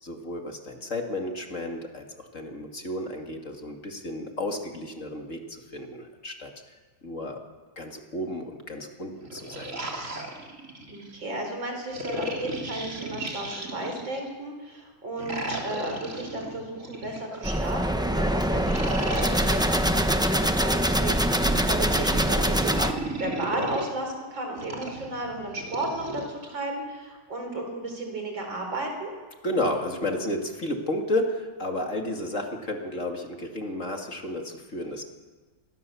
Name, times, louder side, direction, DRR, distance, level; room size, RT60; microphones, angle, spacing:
voice 1, 0.0-6.5 7.0-7.4 7.8-10.0 29.4-35.0, left 1 dB, 40° left, 2 dB, 2.7 m, -32 dB
sound 1, 9.2-11.1 11.9-14.3 15.2-17.7 18.5-20.1 21.1-23.9 24.6-26.3, right 1 dB, 40° right, 3.3 m, -35 dB
voice 2, 10.9-22.9 23.2-29.1, right 2 dB, 85° right, 3 dB, 5.4 m, -34 dB
sound 2, 17.4-22.9, equal, 5° right, 0.6 m, -24 dB
27.0 x 20.0 x 7.1 m, 1.4 s
omnidirectional pair, 2.0 m